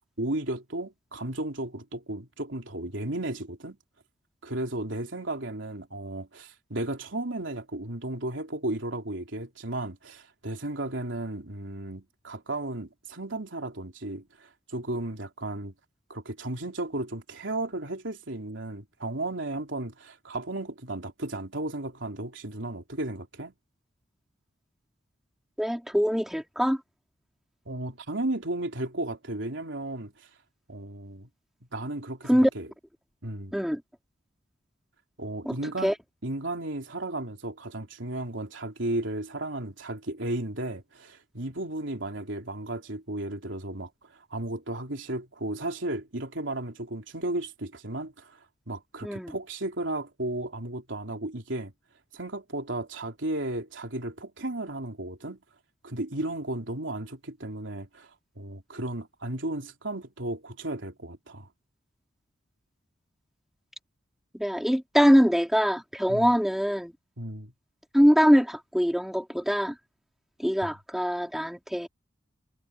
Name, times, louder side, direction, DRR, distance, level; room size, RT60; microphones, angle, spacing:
voice 1, 0.2-3.8 4.4-15.7 16.1-23.5 27.7-30.3 30.7-31.3 31.7-32.7 33.2-33.5 35.2-35.9 36.2-51.7 52.1-55.4 55.8-61.5 66.1-66.3 67.2-67.5 70.6-70.8, right 1 dB, 70° right, 3.6 m, -34 dB
voice 2, 25.6-26.8 32.3-32.5 33.5-33.8 35.5-35.6 35.8-35.9 49.0-49.3 64.3-66.9 67.9-69.8 70.4-71.9, equal, ahead, 3.9 m, -23 dB
head